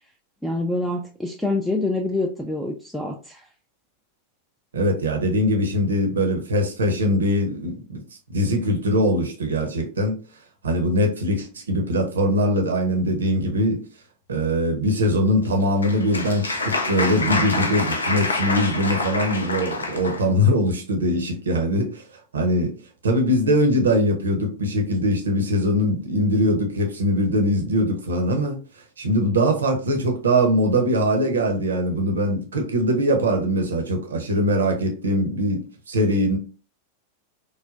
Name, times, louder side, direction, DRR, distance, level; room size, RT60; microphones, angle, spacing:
voice 1, 0.4-3.4, left 2 dB, ahead, 0.3 m, -26 dB
voice 2, 4.7-8.0 8.3-10.2 10.6-13.8 14.3-22.0 22.3-22.7 23.0-28.6 29.0-36.4, equal, 70° right, 0.6 m, -22 dB
Applause, 15.4-20.3, left 3 dB, 75° left, 0.4 m, -27 dB
3.2 x 2.1 x 2.4 m
figure-of-eight pair, 90°, 0 cm